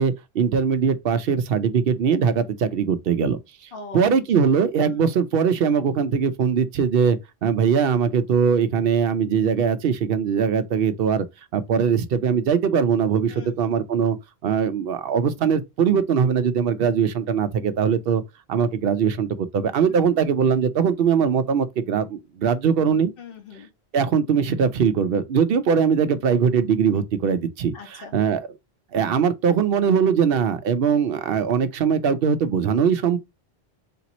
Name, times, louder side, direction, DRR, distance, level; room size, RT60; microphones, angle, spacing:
voice 1, 0.0-3.4 3.9-11.3 11.5-14.2 14.4-18.2 18.5-23.1 23.9-28.5 28.9-33.2, right 7 dB, 65° right, 0.8 m, -21 dB
voice 2, 3.7-4.1 4.9-5.1 13.3-13.5 19.8-20.1 23.2-23.7 27.7-28.1, left 4 dB, 60° left, 1.3 m, -40 dB
3.4 x 2.9 x 4.1 m
omnidirectional pair, 1.1 m